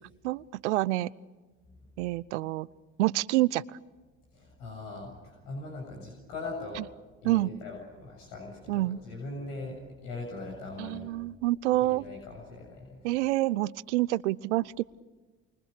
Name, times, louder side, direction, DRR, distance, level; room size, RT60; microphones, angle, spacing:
voice 1, 0.2-1.1 2.0-2.7 3.0-3.6 7.2-7.5 8.7-9.0 10.8-12.0 13.0-14.8, right 17 dB, 85° right, 21 dB, 0.7 m, -27 dB
voice 2, 4.3-6.9 7.2-11.1 11.7-13.1, left 2 dB, 75° left, 0 dB, 7.4 m, -41 dB
29.0 x 24.0 x 6.7 m, 1.3 s
hypercardioid pair, 60°, 34 cm